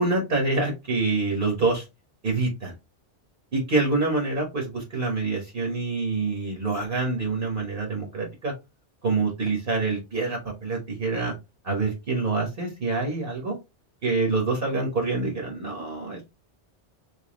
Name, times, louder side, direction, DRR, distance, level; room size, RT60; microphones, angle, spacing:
voice 1, 0.0-1.8 2.2-2.7 3.5-8.5 9.0-11.3 11.6-13.6 14.0-16.3, right 3 dB, 50° right, 0 dB, 1.2 m, -26 dB
3.5 x 3.0 x 3.0 m, 0.24 s
omnidirectional pair, 1.2 m